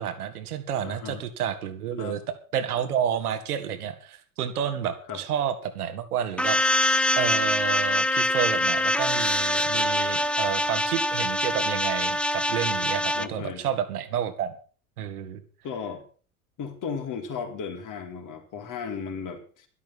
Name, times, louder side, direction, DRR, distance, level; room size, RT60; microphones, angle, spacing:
voice 1, 0.0-2.2 2.5-6.8 7.2-14.5 15.0-15.4, right 9 dB, 85° right, 8 dB, 2.2 m, -30 dB
voice 2, 0.8-1.2 2.0-2.2 5.1-5.2 13.1-13.7 15.6-16.1 16.6-19.7, left 6 dB, 45° left, 4 dB, 3.9 m, -35 dB
sound 1, 6.4-13.3, left 1 dB, ahead, 0.8 m, -24 dB
12.0 x 12.0 x 6.2 m, 0.40 s
hypercardioid pair, 80°, 44 cm